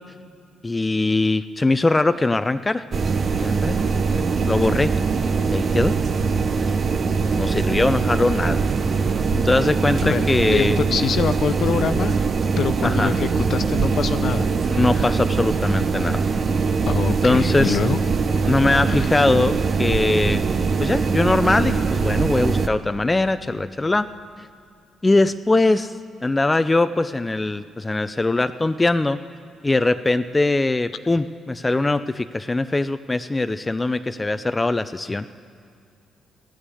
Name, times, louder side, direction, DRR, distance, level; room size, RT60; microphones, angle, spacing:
voice 1, 0.6-2.8 3.3-3.8 4.1-4.9 5.5-6.0 7.1-8.6 9.4-10.8 12.8-13.1 14.7-16.2 17.1-17.8 18.5-20.4 20.8-24.1 25.0-25.9 26.2-29.2 29.6-35.3, left 2 dB, 20° left, 11 dB, 0.4 m, -21 dB
sound 1, 2.9-22.7, right 5 dB, 45° right, 0.7 m, -22 dB
voice 2, 10.0-12.1 12.6-14.5 14.9-15.2 16.9-18.0 18.9-19.1, left 7 dB, 55° left, 12 dB, 0.7 m, -25 dB
14.0 x 9.7 x 8.5 m, 2.4 s
hypercardioid pair, 45°, 0 cm